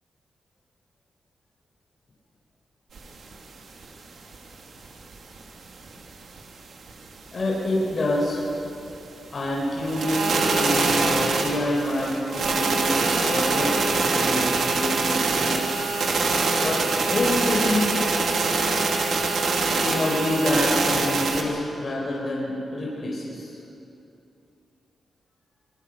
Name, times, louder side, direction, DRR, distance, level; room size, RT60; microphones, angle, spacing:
sound 1, 3.0-3.1 3.3-3.4 3.8-3.9 4.3-4.4 4.8-5.4 5.9-6.0 6.4-6.5 6.9-7.0 7.4-7.5 7.9-8.0 8.4-8.5 8.9-9.0 9.4-9.5 9.8-21.4, right 3 dB, 60° right, 2.5 m, -24 dB
voice 1, 7.3-8.5 9.3-15.7 16.6-17.9 19.8-23.5, left 1 dB, 30° left, -4 dB, 4.6 m, -27 dB
26.0 x 20.5 x 6.6 m, 2.8 s
wide cardioid pair, 165°, 0 cm